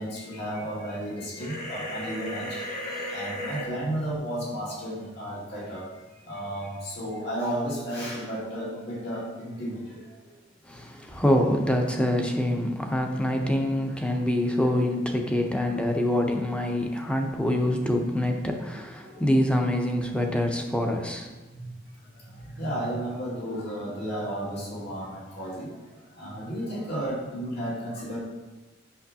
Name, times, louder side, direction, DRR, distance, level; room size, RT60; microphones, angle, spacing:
voice 1, 0.0-5.8 6.3-10.0 19.0-19.2 22.3-25.8 26.2-28.2, right 1 dB, 60° left, -6 dB, 2.3 m, -33 dB
sound 1, 1.4-3.7, equal, 35° left, 1.8 m, -34 dB
voice 2, 10.7-21.3, left 1 dB, 5° left, 3 dB, 0.6 m, -25 dB
8.3 x 6.2 x 2.8 m, 1.1 s
head